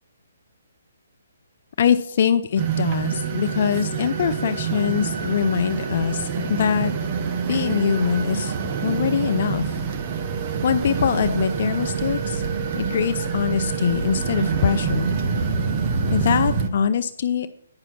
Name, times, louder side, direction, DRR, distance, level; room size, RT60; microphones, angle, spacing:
voice 1, 1.8-6.9 7.5-8.5 8.8-9.8 10.6-12.4 12.7-15.1 16.1-17.5, left 7 dB, 55° left, 9 dB, 0.6 m, -23 dB
sound 1, 2.6-16.7, right 6 dB, 35° right, 1.0 m, -26 dB
9.7 x 6.0 x 5.9 m, 0.66 s
hypercardioid pair, 150°, 0 cm